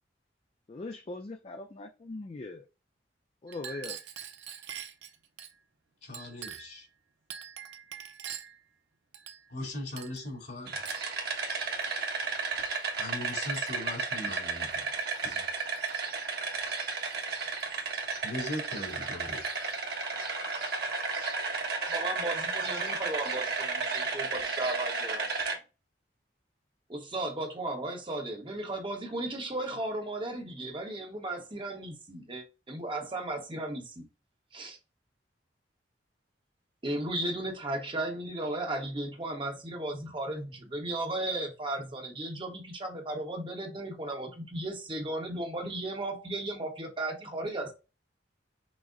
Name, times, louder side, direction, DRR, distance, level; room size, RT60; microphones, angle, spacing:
voice 1, 0.7-2.7 3.4-4.0, left 2 dB, 35° left, 0.4 m, -40 dB
Chink clink, 3.5-5.5 6.1-6.8 7.3-8.6 9.1-9.7 10.0-10.3 10.9-11.1 11.8-12.0 12.7-12.9 13.3-14.0 14.7-15.3 15.6-16.0 17.0-17.7 18.5-18.6 18.9-19.8, right 8 dB, 80° right, 0.6 m, -45 dB
voice 2, 6.0-6.9 9.5-10.8 13.0-14.7 15.2-15.4 18.2-19.4, left 1 dB, 65° left, 2.5 m, -39 dB
sound 1, 10.7-25.6, right 4 dB, 60° right, 1.3 m, -33 dB
voice 3, 21.9-25.3 26.9-34.0 34.5-34.8 36.8-47.7, right 1 dB, 30° right, 0.9 m, -35 dB
6.1 x 2.1 x 3.7 m
head